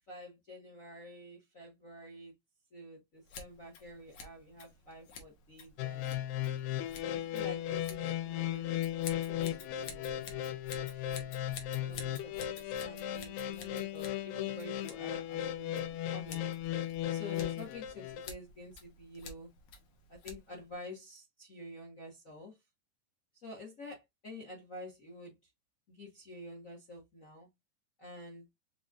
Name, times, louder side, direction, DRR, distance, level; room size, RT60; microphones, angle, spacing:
voice 1, 0.1-2.3 2.7-6.1 7.1-8.7 9.0-11.3 11.8-16.4 17.1-19.5 20.1-22.6 23.3-25.4 25.9-27.5 28.0-28.5, left 2 dB, 40° left, 1.1 m, -49 dB
Scissors, 3.2-20.7, left 4 dB, 60° left, 2.0 m, -51 dB
sound 1, 5.8-18.3, left 12 dB, 85° left, 2.3 m, -36 dB
5.6 x 3.6 x 2.4 m
omnidirectional pair, 3.9 m